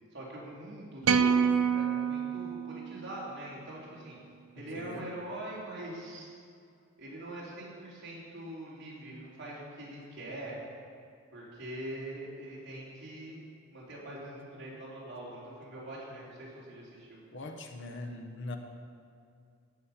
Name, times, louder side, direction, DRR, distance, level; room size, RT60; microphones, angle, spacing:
voice 1, 0.1-4.2 4.6-6.3 7.0-10.6 11.3-13.4 13.7-17.2, right 1 dB, 55° right, -6 dB, 3.6 m, -43 dB
sound 1, 1.0-3.4, right 6 dB, 85° right, 0.5 m, -28 dB
voice 2, 4.7-5.1 17.3-18.6, left 2 dB, 55° left, 5 dB, 1.0 m, -41 dB
17.0 x 6.4 x 5.8 m, 2.4 s
head